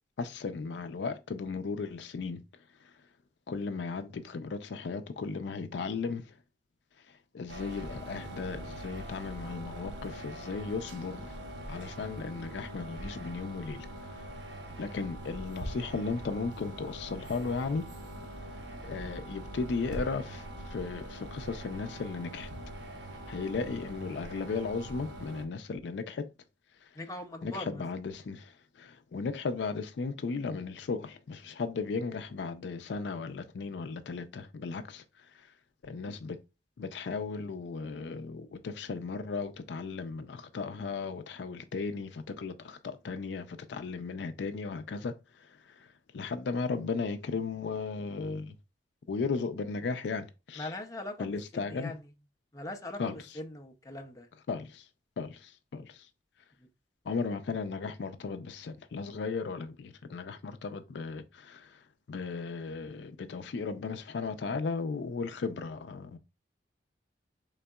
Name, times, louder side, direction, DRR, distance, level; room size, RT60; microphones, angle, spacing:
voice 1, 0.2-2.4 3.5-6.2 7.3-11.3 11.7-13.9 14.8-17.9 18.8-22.5 23.3-26.3 27.4-28.5 28.8-35.0 35.8-36.4 36.8-45.1 45.4-45.5 45.8-45.9 46.1-48.5 49.1-50.7 51.2-51.9 53.0-53.2 54.5-54.8 55.2-56.1 57.1-61.8 62.1-66.2, left 4 dB, 75° left, 0.4 m, -36 dB
sound 1, 7.5-25.5, right 1 dB, 80° right, 0.8 m, -43 dB
voice 2, 26.9-27.8 50.6-52.1 52.5-54.3, left 1 dB, 20° left, 0.5 m, -41 dB
3.9 x 3.5 x 2.2 m
head